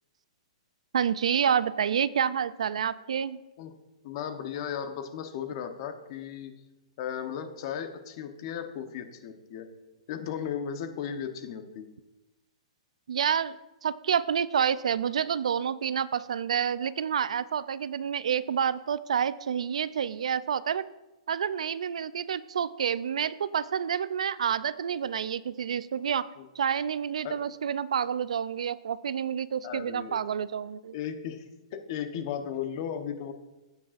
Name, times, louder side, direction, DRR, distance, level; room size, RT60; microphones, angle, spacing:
voice 1, 0.9-3.4 13.1-13.6 13.8-20.8 21.3-26.3 26.6-30.9, right 8 dB, 85° right, 17 dB, 0.4 m, -28 dB
voice 2, 4.0-6.5 7.0-9.7 10.1-11.9 26.4-26.5 27.2-27.4 29.6-30.2 30.9-33.3, left 8 dB, 50° left, 8 dB, 1.0 m, -36 dB
16.0 x 6.3 x 2.5 m, 1.0 s
hypercardioid pair, 140°, 3 cm